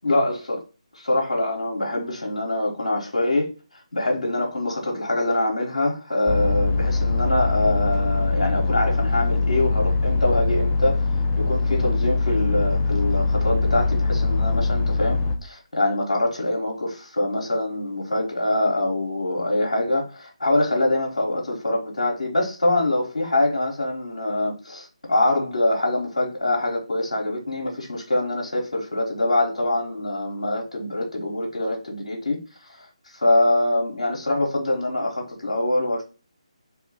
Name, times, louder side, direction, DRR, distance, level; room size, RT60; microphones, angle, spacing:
voice 1, 0.0-0.6 1.0-3.5 3.9-11.1 11.4-32.4 32.7-36.0, left 1 dB, 80° left, -2 dB, 1.0 m, -24 dB
sound 1, 6.3-15.3, left 3 dB, 20° left, 0.4 m, -22 dB
3.0 x 2.8 x 3.9 m, 0.33 s
figure-of-eight pair, 150°, 4 cm